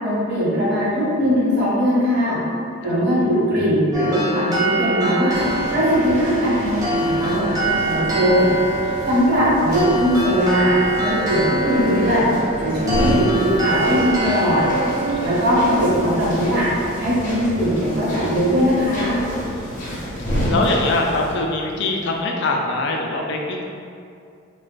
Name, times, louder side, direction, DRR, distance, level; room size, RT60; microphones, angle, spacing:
voice 1, 0.0-2.4 2.8-5.3 5.7-8.5 9.0-10.7 11.0-12.3 12.6-14.6 15.2-16.6 17.0-19.2, equal, 55° right, -11 dB, 1.3 m, -20 dB
sound 1, 3.9-17.2, right 2 dB, 20° right, 0.6 m, -25 dB
sound 2, 5.3-21.3, equal, 40° left, 0.7 m, -28 dB
voice 2, 19.5-20.1 20.5-23.6, left 2 dB, 60° left, 1 dB, 0.3 m, -24 dB
2.5 x 2.2 x 3.7 m, 2.4 s
head